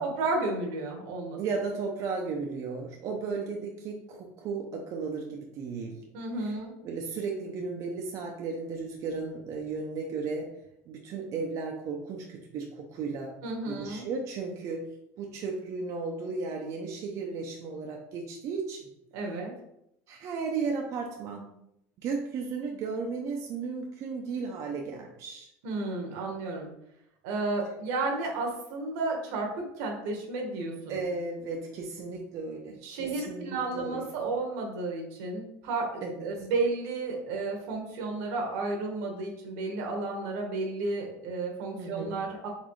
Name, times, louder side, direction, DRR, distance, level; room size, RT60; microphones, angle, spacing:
voice 1, 0.0-1.4 6.1-6.8 13.4-14.1 19.1-19.5 25.6-26.7 27.2-31.0 32.8-42.5, right 3 dB, 80° right, 1 dB, 1.2 m, -32 dB
voice 2, 1.4-6.0 6.4-6.6 6.8-10.5 10.9-13.3 13.7-14.9 15.2-18.9 20.1-21.5 22.0-25.5 30.9-34.0 36.0-36.3 41.8-42.2, right 4 dB, 45° right, 0 dB, 0.6 m, -35 dB
4.1 x 3.5 x 3.1 m, 0.79 s
cardioid pair, 145°, 8 cm